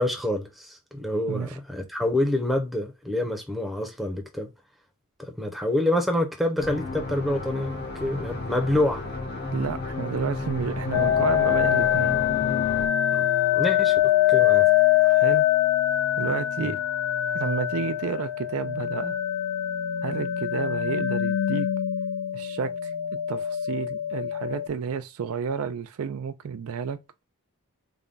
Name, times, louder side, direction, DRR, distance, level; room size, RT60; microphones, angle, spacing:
voice 1, 0.0-4.5 5.2-9.0 13.1-14.7 16.6-16.7, left 1 dB, ahead, 0.6 m, -27 dB
sound 1, 6.6-12.9, left 2 dB, 50° left, 0.8 m, -33 dB
voice 2, 9.4-12.2 15.0-15.5 16.2-16.8 17.3-19.2 20.0-21.7 22.3-22.9 23.3-27.0, right 6 dB, 70° right, 0.4 m, -31 dB
sound 2, 10.9-24.7, left 12 dB, 70° left, 0.4 m, -24 dB
3.5 x 2.2 x 3.8 m
head